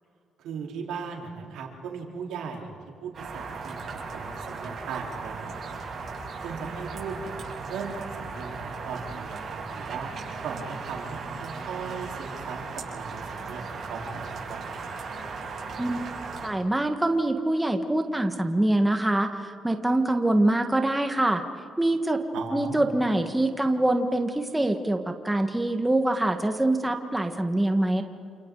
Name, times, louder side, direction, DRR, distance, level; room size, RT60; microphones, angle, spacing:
voice 1, 0.4-5.8 6.4-7.4 7.7-10.1 10.4-12.6 12.9-14.9 22.3-22.9, right 5 dB, 85° right, -1 dB, 4.1 m, -38 dB
Wisła brzeg Roboty RF, 3.1-16.5, right 4 dB, 50° right, 7.1 m, -37 dB
voice 2, 16.4-21.4 21.8-22.2 22.5-28.0, right 1 dB, 10° right, 5 dB, 1.6 m, -24 dB
29.0 x 27.5 x 4.0 m, 2.5 s
cardioid pair, 90°, 0 cm